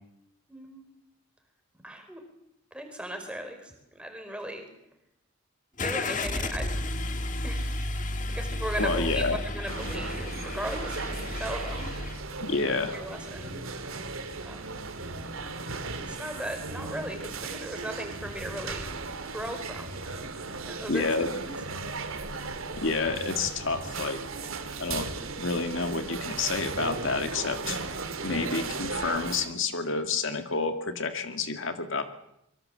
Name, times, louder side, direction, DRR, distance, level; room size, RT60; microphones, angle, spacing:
voice 1, 0.5-0.9 1.8-2.2 2.7-4.7 5.8-6.7 6.9-7.0 7.4-7.9 8.3-9.3 9.5-12.2 12.6-13.6 14.4-14.6 16.0-18.9 19.3-20.0 20.7-21.1, equal, 5° right, 5 dB, 4.5 m, -37 dB
Car / Engine starting, 5.8-12.2, left 1 dB, 35° left, 1.7 m, -32 dB
voice 2, 8.8-9.4 12.4-12.9 20.9-21.3 22.8-24.3 24.8-25.1 25.4-27.8 28.2-32.0, left 4 dB, 65° left, 7 dB, 2.0 m, -29 dB
sound 1, 9.7-29.5, right 3 dB, 75° right, 2.7 m, -36 dB
25.0 x 23.5 x 7.7 m, 0.82 s
head